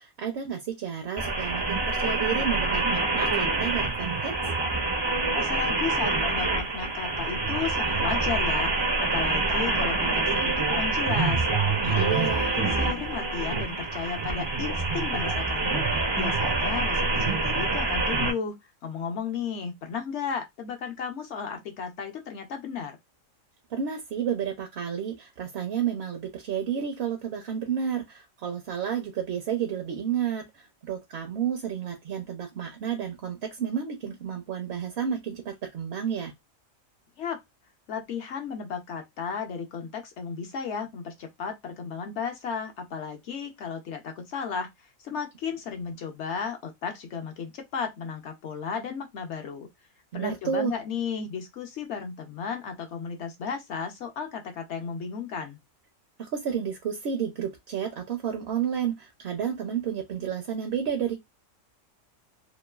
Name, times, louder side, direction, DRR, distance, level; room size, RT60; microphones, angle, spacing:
voice 1, 0.0-4.3 11.8-12.5 23.7-36.3 50.1-50.7 56.2-61.2, right 8 dB, 60° right, 0.7 m, -31 dB
sound 1, 1.2-18.3, right 3 dB, 40° right, 0.3 m, -26 dB
voice 2, 5.3-8.7 9.0-11.5 11.9-23.0 37.2-37.4 37.9-44.7 45.0-49.7 50.1-55.6, left 6 dB, 65° left, 0.9 m, -34 dB
3.0 x 2.2 x 2.2 m
omnidirectional pair, 1.4 m